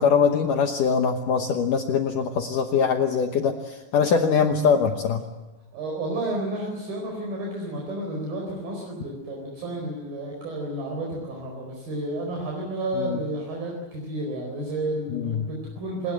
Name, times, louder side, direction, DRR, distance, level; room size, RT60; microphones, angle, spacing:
voice 1, 0.0-5.2 13.0-13.2 15.1-15.5, left 6 dB, 70° left, 5 dB, 2.1 m, -22 dB
voice 2, 5.7-16.1, right 1 dB, 55° right, -1 dB, 6.2 m, -31 dB
26.0 x 21.0 x 7.8 m, 1.1 s
omnidirectional pair, 5.0 m